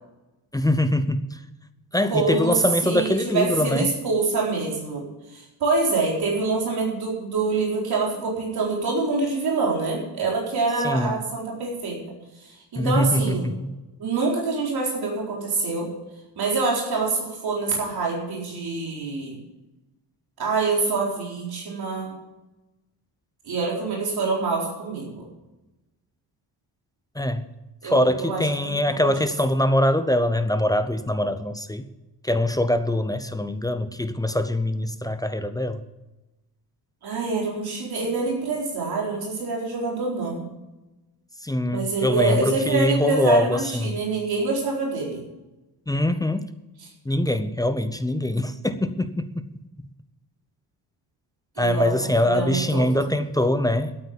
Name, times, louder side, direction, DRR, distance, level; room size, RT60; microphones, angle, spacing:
voice 1, 0.5-1.4 1.9-3.9 10.8-11.2 12.8-13.7 27.1-27.4 27.8-31.9 32.2-35.8 41.4-44.0 45.9-46.5 47.0-49.5 51.6-54.0, left 1 dB, 10° left, 10 dB, 0.6 m, -23 dB
voice 2, 2.1-2.5 2.8-12.0 12.4-13.5 14.0-15.9 16.4-19.4 20.4-22.1 23.4-25.3 27.8-28.5 28.9-29.0 37.0-40.5 41.7-45.2 51.6-51.9 52.2-52.8, right 3 dB, 60° right, -2 dB, 4.3 m, -25 dB
12.5 x 8.8 x 7.0 m, 1.0 s
cardioid pair, 145°, 41 cm